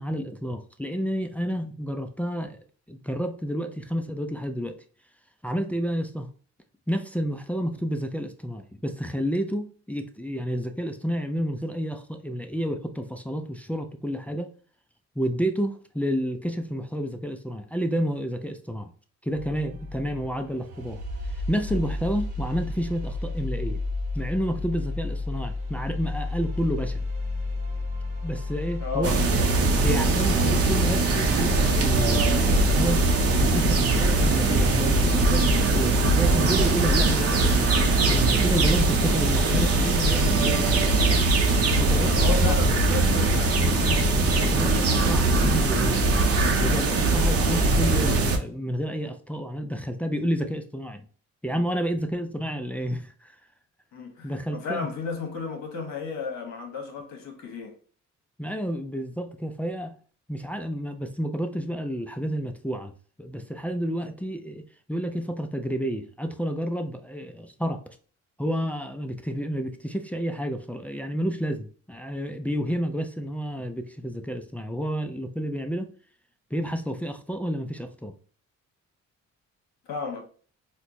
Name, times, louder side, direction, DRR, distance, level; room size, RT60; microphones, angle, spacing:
voice 1, 0.0-2.6 2.9-4.8 5.4-6.3 6.9-14.5 15.2-18.9 19.2-21.0 21.3-23.8 24.1-27.1 28.2-29.2 29.8-33.1 33.4-37.8 38.1-40.9 41.7-42.6 43.8-44.1 44.4-46.1 46.6-51.0 51.4-53.4 54.2-54.9 58.4-59.9 60.3-62.9 63.2-64.6 64.9-67.8 68.4-75.9 76.5-78.1, equal, 5° left, 0.3 m, -30 dB
sound 1, 19.3-29.6, left 2 dB, 75° right, 1.0 m, -32 dB
voice 2, 28.8-29.2 42.0-43.6 53.9-57.7 79.9-80.2, left 4 dB, 60° left, 1.1 m, -33 dB
sound 2, 29.0-48.4, right 2 dB, 50° right, 0.7 m, -21 dB
4.3 x 2.2 x 2.6 m
cardioid pair, 90°, 30 cm